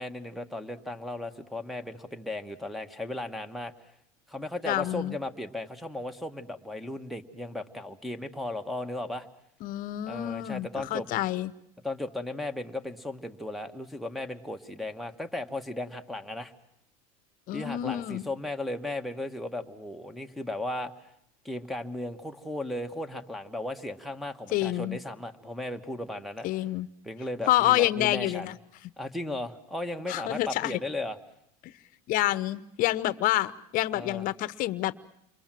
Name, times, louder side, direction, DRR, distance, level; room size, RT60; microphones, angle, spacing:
voice 1, 0.0-3.7 4.3-9.3 10.1-11.1 11.8-16.5 17.5-21.1 21.4-26.5 27.0-28.5 29.0-31.2 33.9-34.3, left 1 dB, ahead, 2 dB, 1.5 m, -36 dB
voice 2, 4.7-5.2 9.6-11.5 17.5-18.3 24.5-25.0 26.4-26.9 27.5-28.6 30.1-30.8 31.6-31.7 32.1-34.9, left 15 dB, 50° left, 16 dB, 1.0 m, -28 dB
29.0 x 23.0 x 7.6 m, 0.77 s
supercardioid pair, 125°, 18 cm